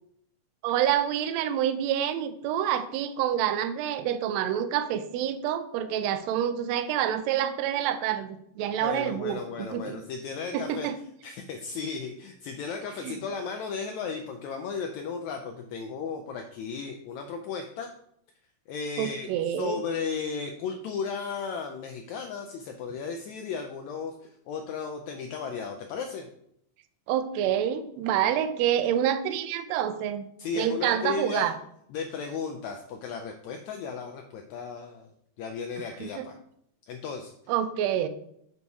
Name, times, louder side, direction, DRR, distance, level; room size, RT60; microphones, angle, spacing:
voice 1, 0.6-10.0 10.5-11.0 13.0-13.2 19.0-19.8 27.1-30.3 30.6-31.5 36.0-36.3 37.5-38.1, right 10 dB, 90° right, 10 dB, 1.5 m, -27 dB
voice 2, 8.8-10.9 11.2-17.9 18.7-26.3 30.4-31.5 31.9-35.1 35.4-36.4 36.9-37.3, left 5 dB, 80° left, 4 dB, 1.8 m, -35 dB
7.0 x 4.1 x 4.7 m, 0.72 s
omnidirectional pair, 3.6 m